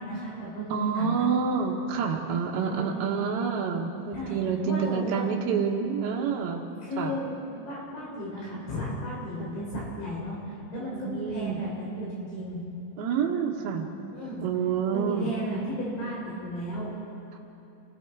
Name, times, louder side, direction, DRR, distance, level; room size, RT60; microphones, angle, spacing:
voice 1, 0.0-1.3 2.6-3.2 4.1-5.2 6.8-12.6 14.1-14.4 14.9-16.9, right 1 dB, 80° left, -5 dB, 9.3 m, -34 dB
voice 2, 0.7-6.7 7.0-7.1 9.4-9.6 11.0-11.6 13.0-13.9 14.4-15.3 17.3-17.4, right 6 dB, 65° right, -2 dB, 3.1 m, -28 dB
29.0 x 20.0 x 4.8 m, 2.9 s
omnidirectional pair, 5.2 m